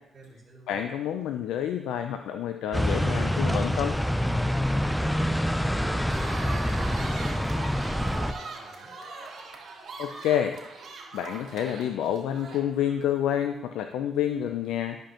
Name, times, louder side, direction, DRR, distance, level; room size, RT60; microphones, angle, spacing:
voice 1, 0.1-0.9 5.0-5.2 5.5-8.9, right 2 dB, 35° right, -3 dB, 2.2 m, -46 dB
voice 2, 0.7-3.9 10.0-10.6 11.1-15.0, left 10 dB, 85° left, 7 dB, 0.4 m, -28 dB
sound 1, 2.7-8.3, equal, 5° left, 0.4 m, -26 dB
sound 2, 6.1-13.0, right 3 dB, 65° right, 2.6 m, -40 dB
12.0 x 5.2 x 2.9 m, 0.88 s
cardioid pair, 90°, 0 cm